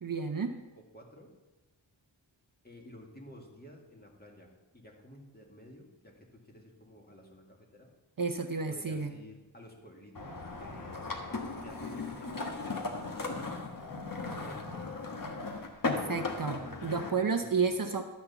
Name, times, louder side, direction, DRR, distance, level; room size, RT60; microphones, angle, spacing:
voice 1, 0.0-0.5 8.2-9.1 15.8-18.0, right 5 dB, 45° right, 6 dB, 0.8 m, -31 dB
voice 2, 0.7-1.3 2.6-7.9 8.7-11.0 11.6-13.7 14.2-14.8 17.2-17.9, equal, 20° left, -1 dB, 2.1 m, -53 dB
sound 1, 10.1-17.1, left 3 dB, 45° left, 1.3 m, -37 dB
12.0 x 4.3 x 6.9 m, 1.1 s
wide cardioid pair, 50°, 46 cm